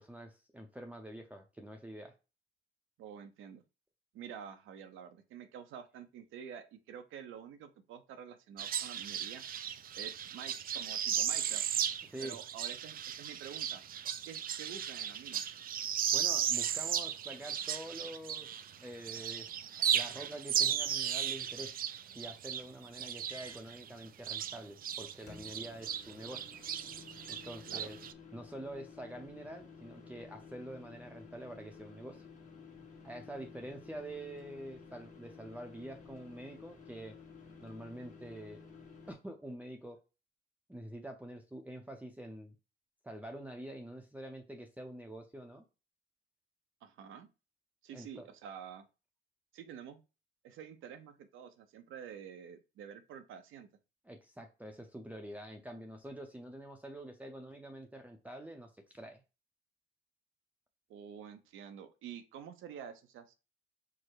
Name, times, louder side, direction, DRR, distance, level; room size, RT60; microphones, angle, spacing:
voice 1, 0.0-2.1 12.1-12.4 16.1-18.5 18.8-19.5 19.9-21.7 22.1-26.5 27.3-28.0 28.3-32.2 33.0-37.1 37.6-38.6 39.1-40.0 40.7-42.6 43.0-45.6 47.9-48.3 54.0-59.2, right 1 dB, 10° right, 2 dB, 0.6 m, -46 dB
voice 2, 3.0-3.6 4.1-9.4 9.9-11.6 12.2-13.8 14.2-15.4 27.7-27.9 46.8-47.3 47.8-48.9 49.5-50.0 50.4-53.7 60.9-63.3, right 8 dB, 85° right, 8 dB, 0.7 m, -48 dB
sound 1, 8.6-18.8 19.0-25.1 25.4-28.1, right 9 dB, 45° right, 0.4 m, -35 dB
sound 2, 23.3-23.7 25.3-39.1, left 5 dB, 40° left, 1.3 m, -53 dB
4.8 x 2.1 x 4.6 m, 0.30 s
cardioid pair, 90°, 20 cm